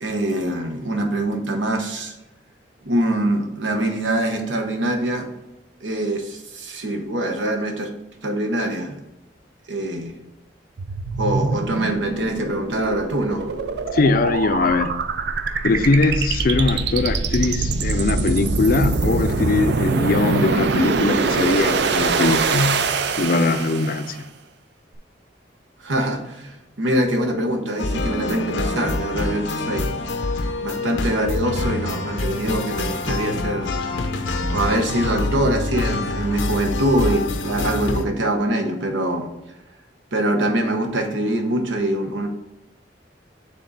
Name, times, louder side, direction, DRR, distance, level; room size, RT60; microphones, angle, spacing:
voice 1, 0.0-2.1 2.8-5.3 5.8-7.9 8.2-9.0 9.7-10.1 11.2-13.4 25.8-29.9 30.6-33.7 34.5-39.3 40.1-42.3, right 1 dB, 85° right, 5 dB, 1.0 m, -24 dB
sound 1, 10.8-24.2, right 4 dB, 65° right, 0.5 m, -23 dB
voice 2, 13.9-14.9 15.6-22.8 23.2-24.2, left 3 dB, 50° left, 10 dB, 0.4 m, -21 dB
sound 2, 27.8-38.0, left 2 dB, 90° left, 0.7 m, -26 dB
6.6 x 3.7 x 3.9 m, 0.95 s
head